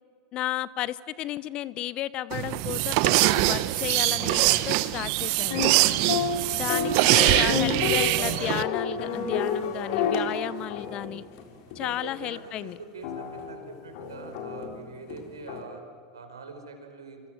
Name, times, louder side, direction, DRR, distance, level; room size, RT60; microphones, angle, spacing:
voice 1, 0.3-5.7 6.5-11.2 11.7-12.8, left 13 dB, 45° left, 19 dB, 1.0 m, -33 dB
sound 1, 2.3-8.6, right 18 dB, 55° right, 1.1 m, -23 dB
sound 2, 5.5-11.9 12.4-12.5 13.0-15.6, left 6 dB, 60° left, 3.9 m, -30 dB
voice 2, 11.8-15.8 16.1-17.2, right 4 dB, 90° right, 5 dB, 4.7 m, -44 dB
27.5 x 27.0 x 7.5 m, 2.3 s
hypercardioid pair, 90°, 2 cm